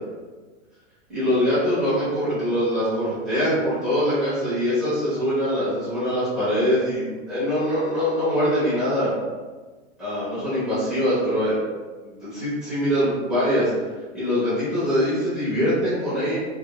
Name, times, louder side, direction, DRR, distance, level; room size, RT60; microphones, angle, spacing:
voice 1, 1.1-9.1 10.0-11.5 12.0-13.7 14.1-16.4, equal, ahead, -14 dB, 0.6 m, -23 dB
3.0 x 2.4 x 2.2 m, 1.3 s
hypercardioid pair, 165°, 38 cm